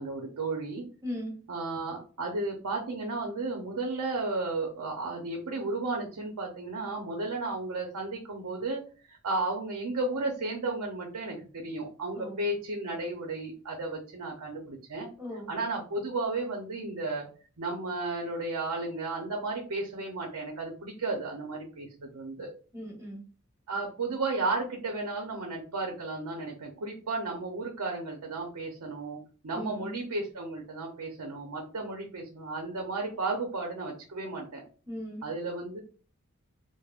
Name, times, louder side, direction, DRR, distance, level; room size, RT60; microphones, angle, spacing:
voice 1, 0.0-0.8 1.5-8.8 9.1-15.1 15.5-17.3 17.6-22.5 23.7-29.2 29.4-34.6 35.2-35.8, right 3 dB, 85° right, 1 dB, 0.7 m, -33 dB
voice 2, 1.0-1.3 12.1-12.4 15.2-15.5 22.7-23.2 29.5-30.0 34.9-35.2, equal, 15° right, -1 dB, 0.9 m, -38 dB
3.4 x 2.0 x 2.4 m, 0.37 s
head